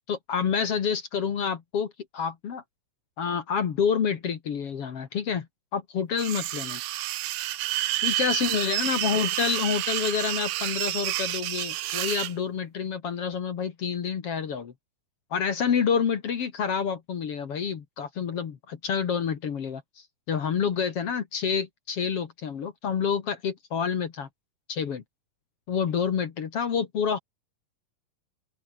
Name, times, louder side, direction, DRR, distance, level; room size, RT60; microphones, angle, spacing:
voice 1, 0.1-2.6 3.2-5.5 5.7-6.8 8.0-14.7 15.3-24.3 24.7-25.0 25.7-27.2, left 7 dB, 50° left, 2.1 m, -28 dB
sound 1, 6.2-12.3, right 15 dB, 90° right, 3.3 m, -29 dB
open air
omnidirectional pair, 4.5 m